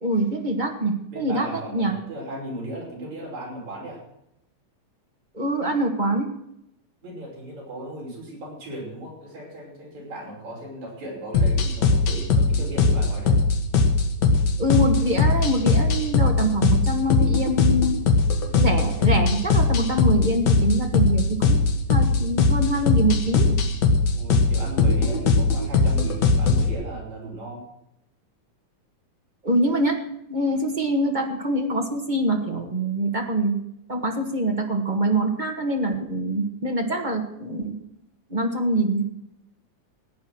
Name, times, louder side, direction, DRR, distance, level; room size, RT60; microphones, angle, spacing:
voice 1, 0.0-1.5 1.7-1.9 5.3-6.3 14.6-18.0 18.5-21.6 21.9-23.6 29.4-30.0 30.3-33.5 33.9-37.7 38.3-39.0, right 1 dB, 35° right, 2 dB, 0.7 m, -24 dB
voice 2, 1.1-4.0 7.0-13.4 24.1-27.6, right 1 dB, 60° right, -3 dB, 6.9 m, -36 dB
sound 1, 11.3-26.7, left 3 dB, 60° left, 2.7 m, -20 dB
16.5 x 9.6 x 6.2 m, 0.81 s
omnidirectional pair, 3.7 m